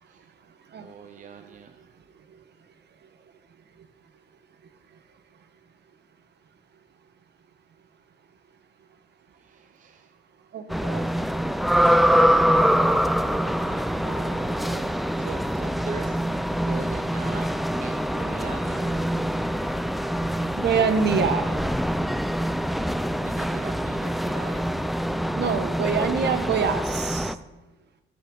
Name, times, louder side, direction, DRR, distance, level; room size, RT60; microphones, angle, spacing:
voice 1, 0.8-1.9 9.3-10.1 13.6-17.5 17.8-19.1 22.7-24.8, right 5 dB, 40° right, 7 dB, 0.7 m, -42 dB
voice 2, 10.5-11.0 20.6-21.5 25.4-27.3, right 6 dB, 60° right, 9 dB, 1.2 m, -25 dB
sound 1, 10.7-27.4, equal, ahead, 0.4 m, -24 dB
14.0 x 7.7 x 4.0 m, 1.1 s
cardioid pair, 90°, 20 cm